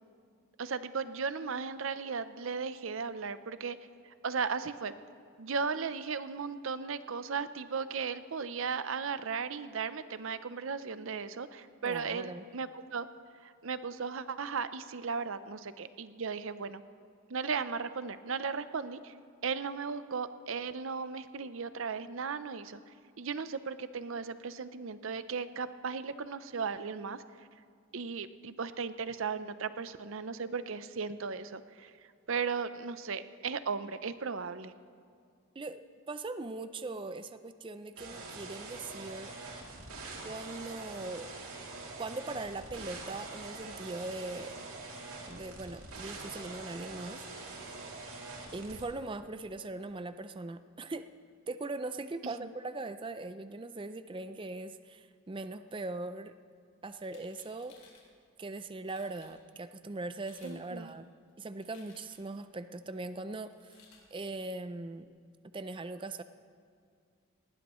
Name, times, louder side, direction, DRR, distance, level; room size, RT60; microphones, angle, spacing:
voice 1, 0.6-3.8 4.0-4.9 5.4-13.1 13.4-16.8 17.3-19.1 19.4-22.8 23.2-27.2 27.9-31.9 32.3-34.7 52.2-52.3 60.4-60.9, right 5 dB, 65° right, 12 dB, 0.6 m, -36 dB
voice 2, 11.8-12.5 35.6-39.4 40.2-41.3 42.0-44.6 45.3-47.3 47.5-47.6 48.5-51.1 51.5-56.3 56.8-57.8 58.4-61.1 61.4-63.8 64.1-65.1 65.5-66.2, right 2 dB, 25° right, 11 dB, 0.4 m, -40 dB
sound 1, 38.0-48.8, right 3 dB, 90° right, 2.8 m, -44 dB
sound 2, 56.9-58.1 58.6-58.7 58.9-59.3 60.1-60.6 60.9-62.4 63.5-64.0, left 5 dB, 85° left, 3.5 m, -60 dB
19.0 x 18.0 x 3.1 m, 2.3 s
head